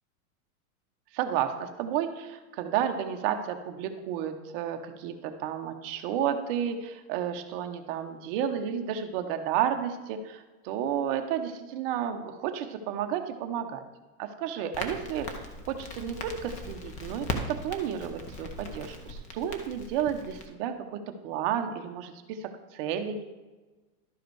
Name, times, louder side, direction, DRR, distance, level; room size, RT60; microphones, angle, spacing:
voice 1, 1.1-13.8 14.2-15.3 15.7-23.2, right 9 dB, 40° right, 6 dB, 0.8 m, -32 dB
Crackle, 14.7-20.5, left 2 dB, 15° left, 0.6 m, -39 dB
12.0 x 4.8 x 4.7 m, 1.2 s
supercardioid pair, 150°, 45 cm